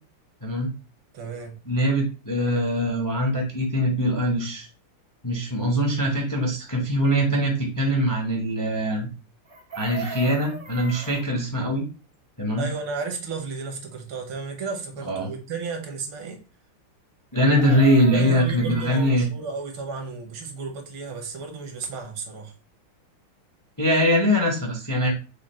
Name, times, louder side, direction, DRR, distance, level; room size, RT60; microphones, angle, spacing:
voice 1, 1.1-1.6 12.6-16.4 18.1-22.5, right 4 dB, 75° right, 1.8 m, -33 dB
voice 2, 1.6-4.7 5.2-9.1 9.8-11.8 12.4-12.7 15.0-15.3 17.3-19.3 23.8-25.1, equal, 20° left, 0.5 m, -22 dB
Chicken rooster, 9.5-11.3 17.3-19.2 21.4-21.5 21.8-22.0, right 2 dB, 60° right, 0.5 m, -38 dB
5.0 x 2.3 x 4.3 m
omnidirectional pair, 2.3 m